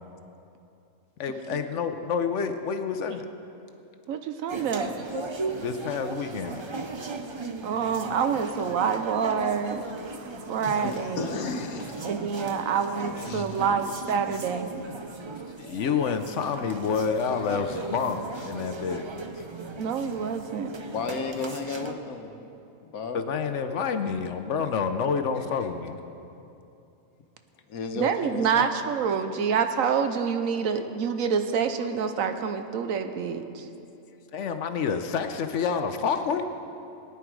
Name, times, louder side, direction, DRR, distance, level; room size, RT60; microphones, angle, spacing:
voice 1, 1.2-3.3 5.6-6.6 15.6-19.0 23.1-26.0 34.3-36.4, left 6 dB, 60° left, 8 dB, 1.0 m, -28 dB
voice 2, 4.1-4.9 7.6-11.5 12.0-14.7 19.8-20.7 27.9-33.7, right 6 dB, 75° right, 8 dB, 1.1 m, -27 dB
sound 1, 4.5-21.9, right 3 dB, 40° right, 0.4 m, -37 dB
voice 3, 10.7-12.1 13.2-13.8 20.9-22.3 22.8-23.2 27.7-28.7, left 4 dB, 90° left, 5 dB, 1.4 m, -33 dB
19.0 x 9.9 x 4.7 m, 2.7 s
omnidirectional pair, 1.5 m